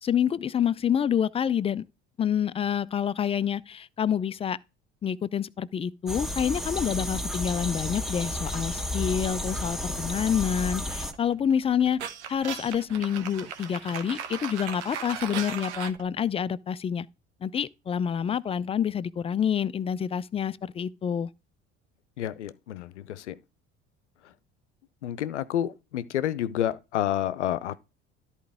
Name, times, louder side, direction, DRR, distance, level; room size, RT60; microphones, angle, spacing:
voice 1, 0.0-1.8 2.2-4.6 5.0-12.0 12.3-17.1 17.4-21.3, left 8 dB, 20° left, 0.3 m, -27 dB
sound 1, 6.1-11.1, left 1 dB, ahead, 1.7 m, -32 dB
sound 2, 10.9-16.0, right 8 dB, 75° right, 0.9 m, -37 dB
voice 2, 22.2-23.4 25.0-27.8, left 11 dB, 80° left, 0.6 m, -29 dB
13.0 x 4.4 x 3.5 m
figure-of-eight pair, 60°, 35 cm